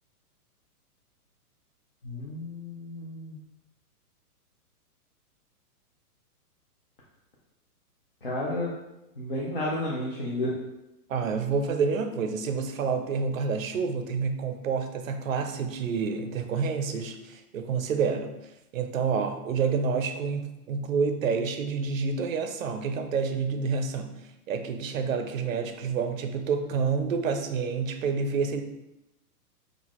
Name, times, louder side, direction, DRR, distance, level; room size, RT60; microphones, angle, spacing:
voice 1, 2.0-3.4 8.2-8.7 9.2-10.5, left 1 dB, 40° left, -5 dB, 0.4 m, -32 dB
voice 2, 11.1-18.3 18.7-24.1 24.5-28.6, right 5 dB, 60° right, 7 dB, 0.5 m, -28 dB
3.8 x 2.4 x 2.9 m, 0.93 s
hypercardioid pair, 180°, 46 cm